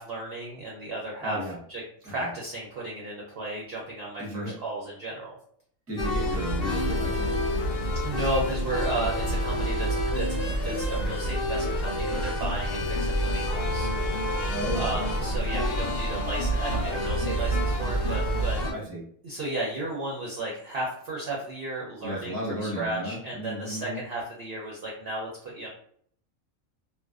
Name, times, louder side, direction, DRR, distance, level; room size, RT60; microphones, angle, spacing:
voice 1, 0.0-1.4 1.7-5.4 8.0-10.3 10.6-13.9 14.7-18.6 19.2-25.7, right 2 dB, 60° right, -4 dB, 0.6 m, -34 dB
voice 2, 1.2-1.6 2.0-2.3 4.2-4.6 5.9-7.4 14.5-15.1 18.7-19.1 22.0-24.0, equal, 15° right, -4 dB, 0.5 m, -35 dB
sound 1, 6.0-18.7, equal, 70° left, 0.5 m, -28 dB
2.5 x 2.2 x 2.3 m, 0.62 s
omnidirectional pair, 1.5 m